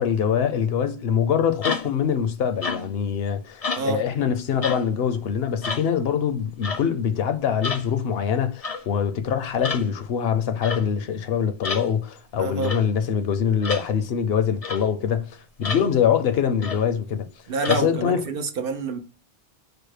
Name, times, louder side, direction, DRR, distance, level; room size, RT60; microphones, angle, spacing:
voice 1, 0.0-17.3 17.7-18.2, left 8 dB, 70° left, 0.8 m, -24 dB
sound 1, 1.6-2.0 2.6-3.0 3.6-3.9 4.6-4.9 5.6-5.9 6.6-6.9 7.6-7.9 8.6-8.8 9.6-9.9 10.6-10.8 11.6-11.9 12.6-12.9 13.6-13.9 14.6-14.8 15.6-15.9 16.6-16.9 17.6-17.8, left 4 dB, 45° left, 0.5 m, -29 dB
voice 2, 12.4-12.8 17.5-19.0, right 4 dB, 60° right, 0.8 m, -27 dB
4.8 x 2.1 x 4.8 m
omnidirectional pair, 1.1 m